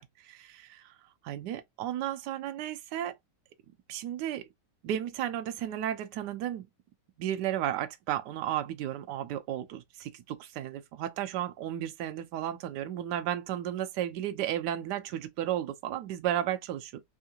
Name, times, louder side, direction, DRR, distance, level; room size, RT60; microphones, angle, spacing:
voice 1, 0.2-0.9 1.2-3.2 3.9-4.5 4.8-6.7 7.2-17.0, right 11 dB, 75° right, 1.2 m, -33 dB
3.6 x 2.3 x 2.7 m
omnidirectional pair, 1.9 m